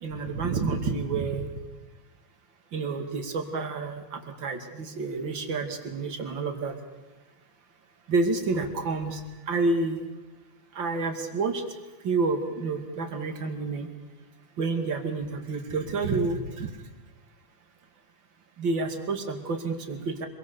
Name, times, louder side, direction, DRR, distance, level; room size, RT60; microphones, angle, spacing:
voice 1, 0.0-1.5 2.7-6.7 8.1-9.2 9.5-10.0 10.8-11.6 12.0-13.9 14.6-16.7 18.6-20.3, right 3 dB, 35° right, 5 dB, 2.6 m, -29 dB
26.0 x 22.5 x 6.9 m, 1.1 s
omnidirectional pair, 4.1 m